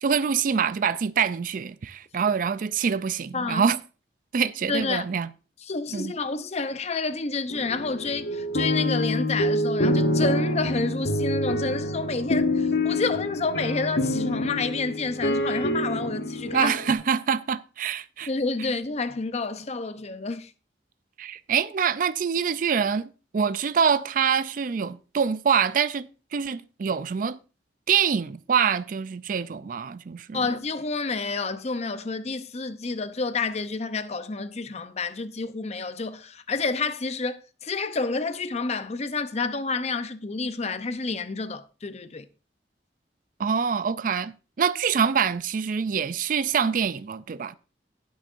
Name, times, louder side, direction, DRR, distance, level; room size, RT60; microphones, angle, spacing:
voice 1, 0.0-3.8 4.3-5.3 5.9-6.1 16.5-18.3 21.2-27.4 27.9-30.5 43.4-47.6, right 6 dB, 50° right, 0.4 m, -25 dB
voice 2, 4.7-5.0 5.7-16.8 18.3-20.5 30.3-42.3, left 3 dB, 40° left, 0.7 m, -29 dB
sound 1, 7.5-16.9, left 1 dB, 65° left, 1.0 m, -26 dB
19.0 x 6.3 x 2.6 m
head